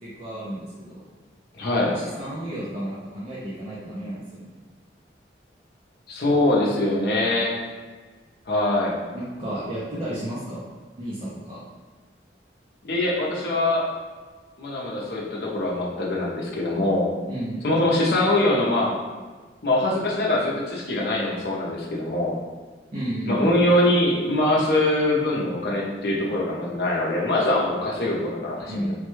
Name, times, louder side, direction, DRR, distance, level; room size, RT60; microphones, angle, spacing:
voice 1, 0.0-1.0 1.9-4.6 9.1-10.6 11.0-11.6 17.3-17.6 22.9-23.5 28.6-28.9, right 1 dB, 30° right, -9 dB, 0.5 m, -32 dB
voice 2, 1.5-2.0 6.1-7.6 8.5-9.0 12.8-13.9 14.6-17.1 17.6-18.9 19.6-22.3 23.3-28.9, left 1 dB, 55° left, -3 dB, 0.6 m, -23 dB
3.1 x 2.2 x 3.1 m, 1.4 s
head